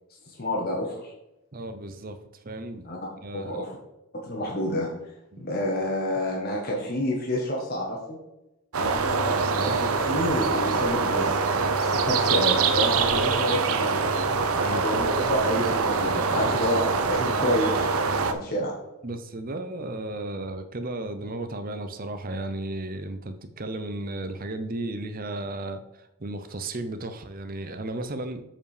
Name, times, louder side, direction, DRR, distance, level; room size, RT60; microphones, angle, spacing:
voice 1, 0.2-1.1 2.8-3.0 3.3-3.8 4.2-4.9 5.4-8.2 8.8-11.4 11.8-14.0 14.5-16.8 17.1-17.9 18.2-18.7, left 1 dB, 45° left, -2 dB, 1.4 m, -29 dB
voice 2, 1.5-2.2 2.4-2.9 3.2-3.5 5.3-5.5 14.6-14.8 19.0-28.4, right 2 dB, 40° right, 9 dB, 0.8 m, -34 dB
sound 1, 8.7-18.3, right 4 dB, 75° right, 0.7 m, -24 dB
7.3 x 5.1 x 5.0 m, 0.91 s
head